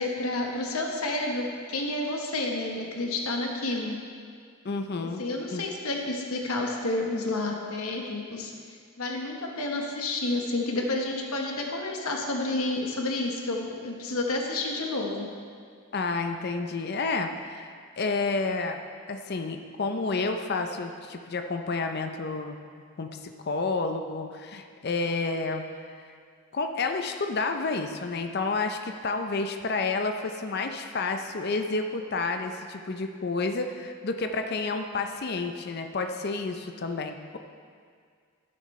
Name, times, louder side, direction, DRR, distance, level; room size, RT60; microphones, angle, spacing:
voice 1, 0.0-4.0 5.0-8.5 9.0-15.3, left 2 dB, 80° left, 1 dB, 1.1 m, -30 dB
voice 2, 4.6-5.2 5.5-5.6 15.9-18.8 19.1-22.6 23.0-25.7 26.5-37.4, left 3 dB, 45° left, 6 dB, 0.5 m, -30 dB
12.5 x 10.5 x 3.2 m, 2.1 s
head